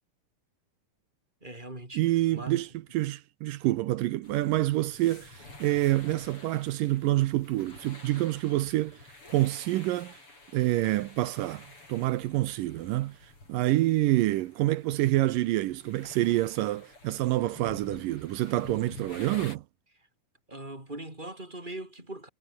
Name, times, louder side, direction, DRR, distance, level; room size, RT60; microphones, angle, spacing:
voice 1, 1.4-2.0 2.3-2.6 20.5-22.3, right 1 dB, 10° right, 6.2 m, -40 dB
voice 2, 1.9-2.7 2.9-10.2 10.5-19.6, right 16 dB, 75° right, 2.2 m, -27 dB
sound 1, 4.2-19.6, left 2 dB, 35° left, 8.7 m, -50 dB
omnidirectional pair, 4.3 m